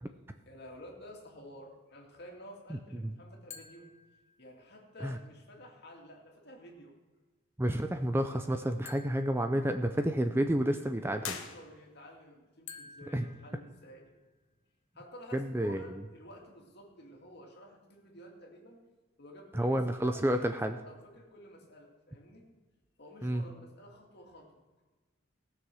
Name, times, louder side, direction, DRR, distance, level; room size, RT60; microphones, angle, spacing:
voice 1, 0.5-3.9 4.4-7.0 10.7-14.1 14.9-18.8 19.2-22.5 23.0-24.8, left 1 dB, 50° left, 0 dB, 2.4 m, -52 dB
voice 2, 2.7-3.1 5.0-5.2 7.6-11.4 13.1-13.2 15.3-15.9 19.5-20.8 23.2-23.4, right 1 dB, 10° right, 7 dB, 0.5 m, -30 dB
sound 1, 3.5-4.8 8.9-10.4 12.7-14.4, left 6 dB, 35° left, 1.0 m, -53 dB
sound 2, 11.2-12.2, left 7 dB, 80° left, 1.2 m, -42 dB
18.0 x 6.5 x 6.3 m, 1.3 s
head